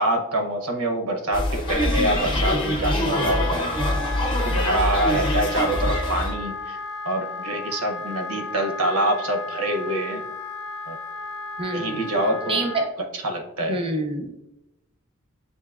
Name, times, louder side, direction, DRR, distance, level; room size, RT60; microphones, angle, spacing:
voice 1, 0.0-3.7 4.4-6.8 7.0-10.2 10.9-11.0 11.7-12.6 13.2-13.8, right 1 dB, 75° right, 3 dB, 0.7 m, -25 dB
sound 1, 1.3-6.3, left 1 dB, 25° left, 0.7 m, -24 dB
Wind instrument woodwind instrument, 3.0-12.9, left 3 dB, 70° left, 0.3 m, -34 dB
voice 2, 11.6-12.0 12.5-12.9 13.6-14.4, right 2 dB, 25° right, 4 dB, 0.6 m, -27 dB
7.6 x 2.6 x 2.3 m, 0.88 s
head